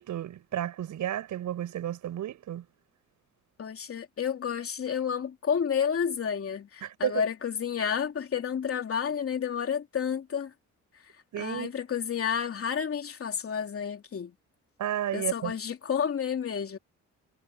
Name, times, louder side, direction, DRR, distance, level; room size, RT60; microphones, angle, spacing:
voice 1, 0.0-2.6 6.8-7.2 11.3-11.7 14.8-15.5, right 11 dB, 75° right, 7.6 m, -32 dB
voice 2, 3.6-10.5 11.0-14.3 15.1-16.8, left 7 dB, 50° left, 3.1 m, -30 dB
cardioid pair, 90°, 30 cm